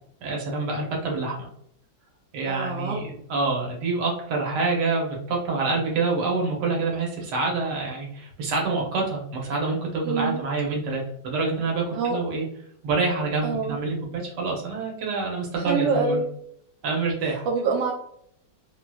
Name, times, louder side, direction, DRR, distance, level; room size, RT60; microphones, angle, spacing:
voice 1, 0.2-1.5 2.3-12.5 12.8-16.2 16.8-17.4, right 3 dB, 70° right, -1 dB, 1.5 m, -27 dB
voice 2, 2.4-3.0 10.0-10.5 11.9-12.2 13.4-13.8 15.6-16.3 17.2-17.9, right 4 dB, 90° right, -1 dB, 1.4 m, -26 dB
3.4 x 2.9 x 2.3 m, 0.68 s
omnidirectional pair, 2.0 m